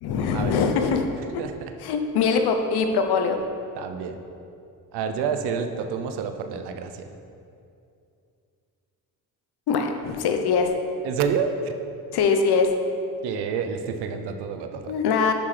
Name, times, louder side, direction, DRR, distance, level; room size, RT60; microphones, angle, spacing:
voice 1, 0.0-1.0 1.8-3.4 9.7-10.7 12.1-12.7 14.9-15.3, left 5 dB, 75° left, 6 dB, 0.9 m, -22 dB
voice 2, 1.4-1.7 3.7-4.2 4.9-7.1 11.0-11.7 13.2-14.9, right 6 dB, 80° right, 7 dB, 0.7 m, -29 dB
10.0 x 5.7 x 3.3 m, 2.6 s
supercardioid pair, 75°, 39 cm